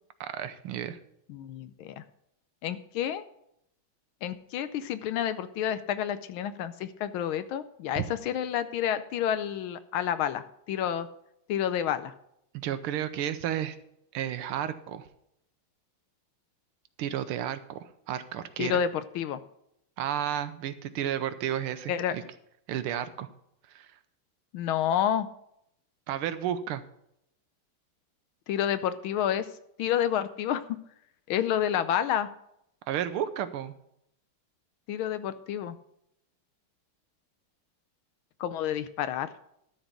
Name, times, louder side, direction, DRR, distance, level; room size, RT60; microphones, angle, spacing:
voice 1, 0.2-1.0 7.9-8.1 12.5-13.8 14.1-15.1 17.0-18.8 20.0-22.2 22.7-23.3 23.7-23.9 26.1-26.8 32.9-33.7, right 10 dB, 80° right, 11 dB, 1.6 m, -32 dB
voice 2, 1.3-2.0 2.6-3.2 4.2-11.1 11.5-12.1 18.6-18.9 19.1-19.4 21.9-22.1 24.5-25.3 28.5-29.4 29.8-30.8 31.3-32.3 34.9-35.8 38.4-39.3, left 10 dB, 80° left, 12 dB, 1.4 m, -29 dB
12.5 x 4.4 x 8.2 m, 0.76 s
omnidirectional pair, 2.4 m